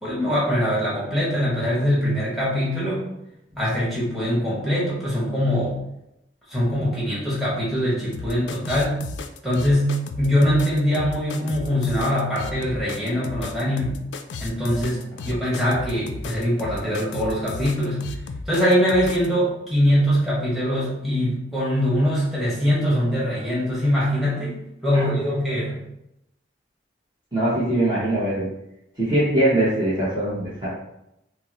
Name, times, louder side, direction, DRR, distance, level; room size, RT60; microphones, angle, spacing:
voice 1, 0.0-3.0 3.6-5.8 6.5-9.0 9.4-14.0 14.4-18.1 18.5-24.6 24.8-25.8, equal, ahead, -7 dB, 1.2 m, -22 dB
sound 1, 8.1-19.3, left 4 dB, 75° left, 0.3 m, -34 dB
voice 2, 27.3-28.5 29.0-30.7, right 1 dB, 25° right, -9 dB, 0.8 m, -22 dB
5.3 x 2.0 x 2.8 m, 0.83 s
head